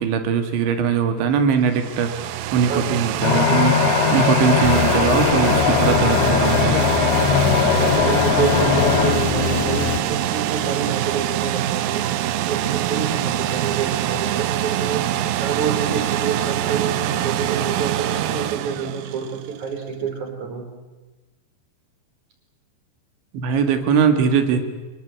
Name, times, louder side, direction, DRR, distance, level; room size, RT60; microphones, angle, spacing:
voice 1, 0.0-6.9 23.3-24.6, right 6 dB, 90° right, 8 dB, 4.3 m, -21 dB
sound 1, 1.5-19.6, right 12 dB, 70° right, 2.5 m, -25 dB
voice 2, 2.7-3.1 7.8-20.7, right 6 dB, 45° right, 4 dB, 5.9 m, -27 dB
sound 2, 3.2-9.1, left 6 dB, 80° left, 4.9 m, -20 dB
sound 3, 4.6-10.0, left 8 dB, 60° left, 3.3 m, -24 dB
28.0 x 20.5 x 8.3 m, 1.2 s
omnidirectional pair, 5.1 m